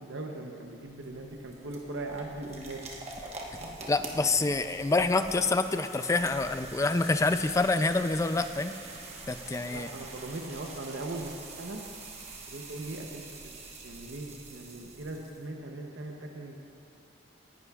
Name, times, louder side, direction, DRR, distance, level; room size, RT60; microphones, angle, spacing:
voice 1, 0.0-2.8 3.6-3.8 9.7-11.8 12.5-16.6, right 2 dB, 80° right, 1 dB, 0.8 m, -40 dB
sound 1, 0.7-15.5, right 3 dB, 35° right, 1.1 m, -45 dB
voice 2, 3.9-8.7 9.3-9.9, left 3 dB, 15° left, 10 dB, 0.3 m, -27 dB
18.0 x 11.0 x 2.4 m, 2.4 s
head